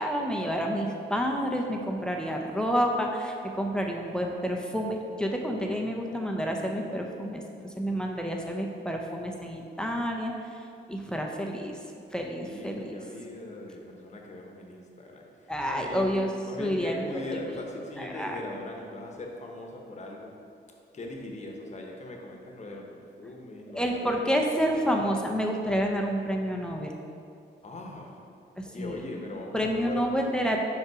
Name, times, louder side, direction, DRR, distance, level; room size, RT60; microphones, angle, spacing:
voice 1, 0.0-11.8 12.1-13.0 15.5-16.3 16.6-17.0 18.0-18.4 23.7-26.9 28.6-29.0 29.5-30.6, equal, 5° left, 1 dB, 0.6 m, -29 dB
voice 2, 12.4-16.1 16.5-20.3 20.9-24.3 27.6-28.2 28.6-30.3, left 2 dB, 40° left, 1 dB, 1.0 m, -40 dB
5.3 x 5.0 x 4.8 m, 2.5 s
cardioid pair, 105°, 18 cm